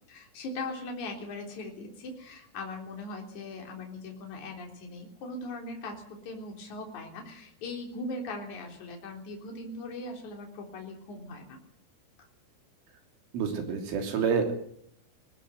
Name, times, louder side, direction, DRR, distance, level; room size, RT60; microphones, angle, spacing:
voice 1, 0.1-11.6, left 2 dB, 40° left, 1 dB, 4.6 m, -40 dB
voice 2, 13.3-14.5, right 6 dB, 70° right, 5 dB, 5.4 m, -28 dB
19.5 x 17.5 x 7.9 m, 0.65 s
omnidirectional pair, 5.9 m